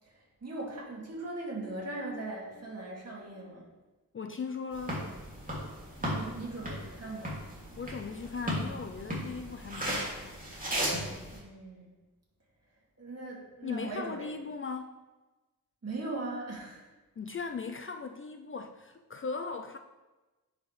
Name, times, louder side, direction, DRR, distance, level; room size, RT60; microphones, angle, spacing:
voice 1, 0.0-3.7 6.0-7.4 11.3-11.9 13.0-14.3 15.8-16.9, right 2 dB, 45° right, -3 dB, 2.3 m, -39 dB
voice 2, 4.1-5.0 7.8-10.5 13.6-14.9 17.2-19.8, left 5 dB, 35° left, 6 dB, 0.4 m, -38 dB
sound 1, 4.7-11.4, equal, 25° right, 2.5 m, -36 dB
10.0 x 4.9 x 3.2 m, 1.2 s
wide cardioid pair, 85°, 35 cm